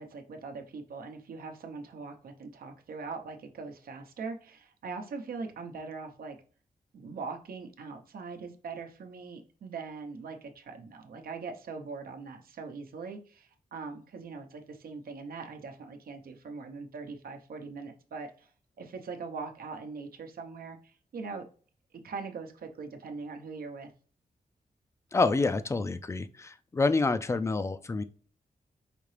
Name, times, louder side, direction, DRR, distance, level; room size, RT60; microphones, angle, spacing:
voice 1, 0.0-6.4 6.9-18.5 18.8-21.4 22.0-23.9, right 4 dB, 85° right, 5 dB, 0.8 m, -41 dB
voice 2, 25.1-28.0, left 3 dB, 20° left, 12 dB, 0.3 m, -27 dB
5.1 x 2.8 x 3.2 m, 0.42 s
wide cardioid pair, 130°, 15 cm